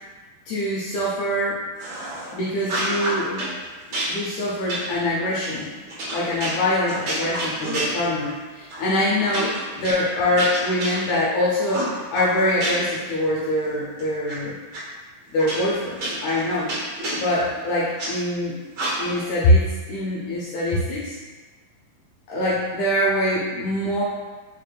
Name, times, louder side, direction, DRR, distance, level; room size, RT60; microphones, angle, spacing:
voice 1, 0.5-1.6 2.3-3.4 3.9-5.7 6.1-14.6 15.3-16.8 17.2-18.6 19.0-21.2 22.3-24.0, left 1 dB, 80° left, -6 dB, 1.7 m, -24 dB
sound 1, 1.8-2.3 2.6-3.6 3.9-8.4 8.7-8.9 9.2-11.3 11.7-13.0 13.4-14.4 14.7-14.8 15.4-18.1 18.7-19.3, right 1 dB, 65° right, 1.3 m, -29 dB
5.2 x 3.2 x 2.2 m, 1.3 s
omnidirectional pair, 4.1 m